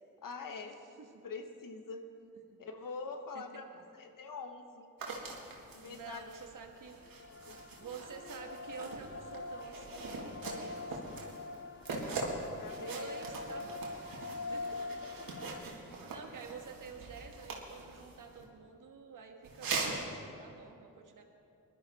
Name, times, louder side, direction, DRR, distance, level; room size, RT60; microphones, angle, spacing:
voice 1, 0.2-0.8 1.2-2.0 2.6-3.7 3.9-4.9 5.7-6.2 7.2-7.6 12.0-13.1 14.7-14.8 15.2-15.3, left 4 dB, 70° left, 6 dB, 1.3 m, -45 dB
voice 2, 3.3-3.8 5.8-7.0 7.8-11.1 12.7-13.9 14.5-14.9 15.5-21.2, right 6 dB, 65° right, 3 dB, 1.5 m, -49 dB
sound 1, 5.0-18.4 19.4-20.0, right 3 dB, 85° right, 2.0 m, -42 dB
sound 2, 7.0-15.6, left 3 dB, 35° left, 0.9 m, -44 dB
19.5 x 12.0 x 4.2 m, 2.6 s
cardioid pair, 50°, 34 cm